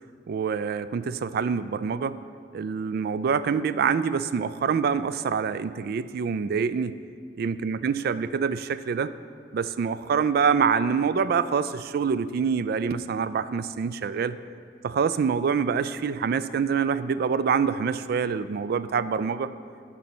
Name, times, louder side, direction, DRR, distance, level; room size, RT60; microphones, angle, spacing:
voice 1, 0.3-2.2 2.5-7.0 7.4-9.1 9.5-14.4 14.8-19.5, right 6 dB, 60° right, 14 dB, 0.3 m, -26 dB
11.5 x 4.1 x 6.0 m, 2.2 s
head